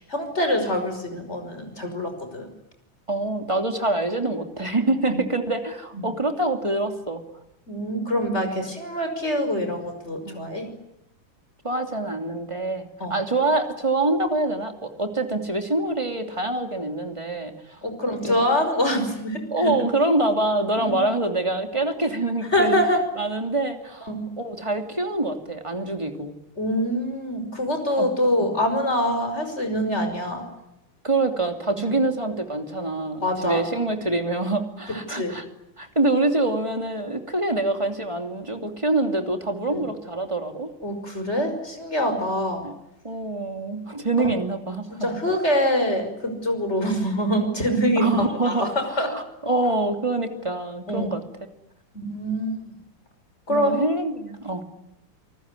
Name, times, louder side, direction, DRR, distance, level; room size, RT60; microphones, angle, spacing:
voice 1, 0.1-2.5 5.1-5.2 5.9-6.1 7.7-10.7 13.0-13.2 17.8-19.8 20.8-21.0 22.5-23.0 24.1-24.2 26.6-30.4 33.2-33.6 35.1-35.3 39.7-39.8 40.8-42.7 44.2-44.3 44.9-49.1 50.9-51.1 51.9-52.7 53.5-53.8, equal, 30° left, 6 dB, 6.0 m, -25 dB
voice 2, 3.1-7.2 8.6-8.7 10.2-10.4 11.6-18.4 19.5-22.8 23.2-24.1 24.4-26.3 28.0-28.1 28.4-28.5 31.0-35.4 35.8-40.7 42.1-42.3 42.6-42.7 43.0-45.2 48.0-51.2 53.5-54.7, right 2 dB, 15° right, 5 dB, 2.8 m, -25 dB
29.5 x 19.5 x 9.9 m, 0.87 s
omnidirectional pair, 2.3 m